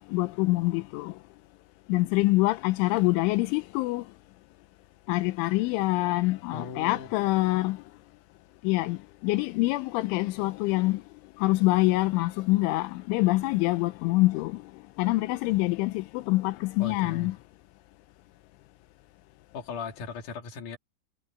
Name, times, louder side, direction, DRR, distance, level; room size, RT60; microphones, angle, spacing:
voice 1, 0.1-1.1 1.9-4.0 5.1-7.8 8.6-9.0 9.2-11.0 11.4-14.5 15.0-17.3, left 20 dB, 85° left, 3.1 m, -25 dB
voice 2, 6.5-7.1 16.8-17.3 19.5-20.8, left 5 dB, 45° left, 3.9 m, -38 dB
omnidirectional pair, 5.6 m